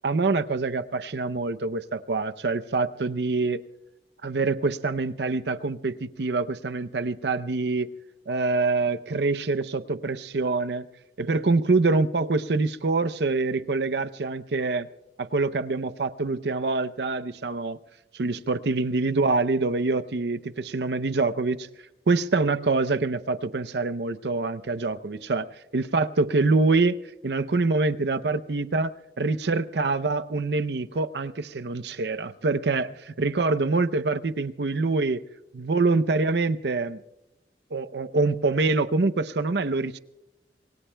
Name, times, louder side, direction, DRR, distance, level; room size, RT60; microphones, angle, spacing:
voice 1, 0.0-3.6 4.2-7.9 8.3-10.9 11.2-14.9 15.2-17.8 18.1-21.7 22.1-25.5 25.7-27.0 27.2-35.2 35.5-37.0 37.7-40.0, right 3 dB, 75° right, 0.6 m, -25 dB
26.5 x 22.5 x 2.2 m
head